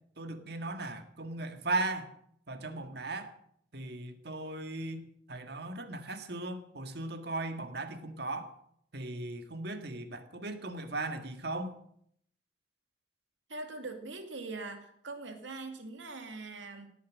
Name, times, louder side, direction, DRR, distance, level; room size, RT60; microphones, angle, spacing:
voice 1, 0.2-2.1 2.5-3.3 3.7-8.5 8.9-11.7, right 2 dB, 60° right, 7 dB, 1.8 m, -37 dB
voice 2, 13.5-16.9, right 3 dB, 85° right, 5 dB, 2.7 m, -42 dB
18.0 x 8.6 x 7.4 m, 0.68 s
head